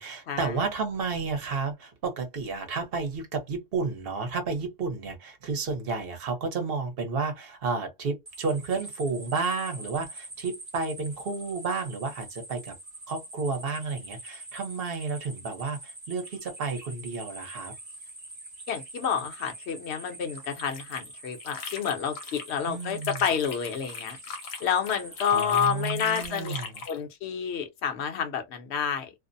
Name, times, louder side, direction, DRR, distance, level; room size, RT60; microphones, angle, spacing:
voice 1, 0.0-12.8 13.1-17.7 22.7-23.2 25.3-26.8, right 4 dB, 50° right, 0.9 m, -31 dB
sound 1, 8.3-26.3, right 2 dB, 25° right, 0.6 m, -45 dB
voice 2, 18.7-24.2 24.6-26.5 26.9-29.1, left 7 dB, 60° left, 0.9 m, -29 dB
sound 2, 20.4-22.5 22.8-27.0, left 5 dB, 75° left, 1.1 m, -40 dB
2.6 x 2.0 x 2.5 m
omnidirectional pair, 1.5 m